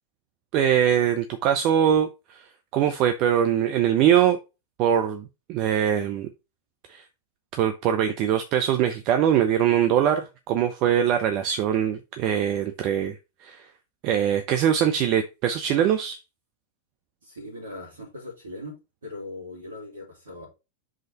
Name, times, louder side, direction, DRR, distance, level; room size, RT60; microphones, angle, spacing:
voice 1, 0.5-2.4 2.7-4.4 4.8-6.3 6.9-7.0 7.5-13.2 13.4-13.6 14.0-16.2, right 9 dB, 40° right, 0.7 m, -22 dB
voice 2, 17.2-20.5, left 1 dB, 65° right, 3.0 m, -40 dB
5.1 x 3.8 x 5.2 m
figure-of-eight pair, 90°, 0 cm